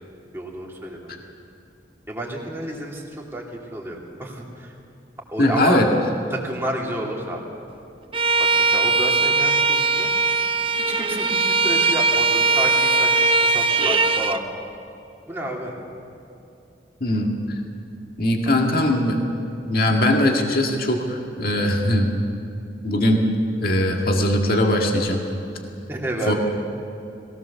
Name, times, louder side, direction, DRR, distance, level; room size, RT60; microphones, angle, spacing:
voice 1, 0.3-1.1 2.1-4.7 5.3-5.8 6.3-7.4 8.4-10.1 10.8-14.4 15.3-15.8 18.5-18.6 25.9-26.3, right 1 dB, 15° right, -2 dB, 2.8 m, -31 dB
voice 2, 5.4-5.9 17.0-17.3 18.2-19.2 19.7-22.1 22.8-23.3 23.6-25.2 26.3-26.4, left 1 dB, 50° left, 1 dB, 2.0 m, -20 dB
Bowed string instrument, 8.1-14.4, right 3 dB, 30° right, 0.6 m, -20 dB
21.5 x 17.5 x 7.1 m, 2.7 s
head